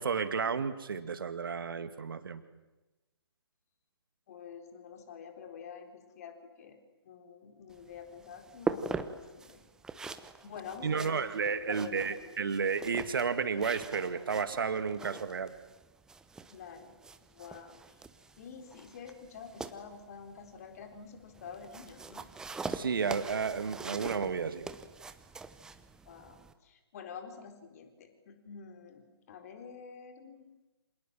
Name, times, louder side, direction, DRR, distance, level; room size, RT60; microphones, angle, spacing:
voice 1, 0.0-2.4 10.8-15.5 22.7-24.6, right 5 dB, 55° right, 11 dB, 2.2 m, -32 dB
voice 2, 4.3-6.8 7.0-9.6 10.4-11.2 11.6-12.4 16.5-17.0 17.3-18.0 18.4-22.3 26.1-30.5, left 6 dB, 35° left, 6 dB, 4.1 m, -48 dB
sound 1, 7.7-26.5, right 4 dB, 5° right, 0.9 m, -43 dB
28.5 x 27.0 x 7.7 m, 1.1 s
figure-of-eight pair, 135°, 14 cm